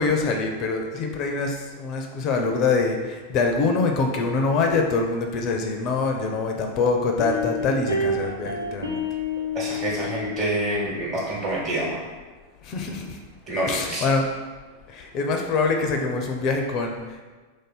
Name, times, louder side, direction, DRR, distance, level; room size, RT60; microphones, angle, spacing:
voice 1, 0.0-9.0 12.6-13.2 13.7-14.3 14.9-17.2, left 4 dB, 40° left, 3 dB, 0.4 m, -24 dB
sound 1, 7.2-10.7, left 2 dB, 85° right, 0.6 m, -28 dB
voice 2, 9.5-12.0 13.5-14.0, right 1 dB, 40° right, -6 dB, 1.1 m, -27 dB
3.1 x 2.6 x 4.2 m, 1.3 s
figure-of-eight pair, 90°, 0 cm